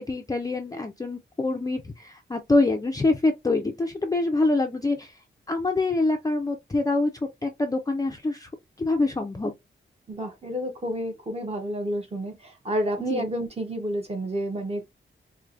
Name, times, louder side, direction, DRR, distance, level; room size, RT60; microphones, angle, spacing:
voice 1, 0.0-5.2 5.5-8.5 8.8-9.5 13.1-13.2, left 2 dB, 20° left, 0.4 m, -25 dB
voice 2, 10.1-14.9, equal, 30° right, 1.0 m, -30 dB
4.5 x 2.1 x 2.5 m
wide cardioid pair, 135°, 20 cm